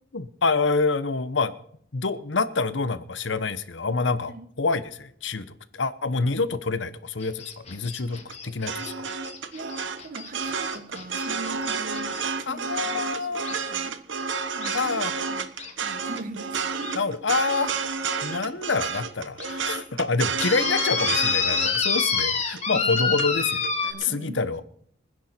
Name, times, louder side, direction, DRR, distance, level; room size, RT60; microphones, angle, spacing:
voice 1, 0.1-1.5 1.9-4.3 4.6-5.5 5.7-9.1 12.5-13.5 14.7-15.1 17.0-17.8 18.2-24.6, left 4 dB, 70° left, 13 dB, 1.0 m, -27 dB
sound 1, 7.2-12.2 13.4-13.6 14.6-14.8 15.6-15.7 16.2-16.3 16.8-16.9 17.7-17.8 18.3-18.4 18.9-19.0 19.4-19.5 20.4-23.9, left 5 dB, 35° left, 2.5 m, -27 dB
sound 2, 8.1-23.3 23.6-24.0, right 5 dB, 75° right, 1.2 m, -30 dB
voice 2, 9.5-14.0 14.5-15.0 15.3-15.5 15.8-17.2 20.5-20.7 22.7-22.9 23.8-24.4, right 2 dB, 50° right, 8 dB, 1.6 m, -41 dB
25.5 x 10.0 x 4.4 m, 0.64 s
head